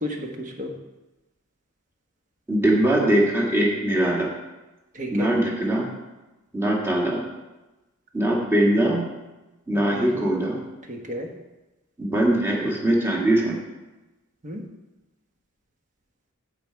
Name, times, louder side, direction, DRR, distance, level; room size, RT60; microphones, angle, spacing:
voice 1, 0.0-0.7 4.9-5.4 9.7-10.5 10.9-11.3 14.4-14.6, equal, 35° right, 3 dB, 1.3 m, -33 dB
voice 2, 2.5-4.3 5.1-5.9 6.5-7.2 8.1-9.1 9.7-10.6 12.0-13.6, right 1 dB, 10° right, -3 dB, 1.8 m, -21 dB
14.5 x 5.0 x 4.6 m, 1.1 s
head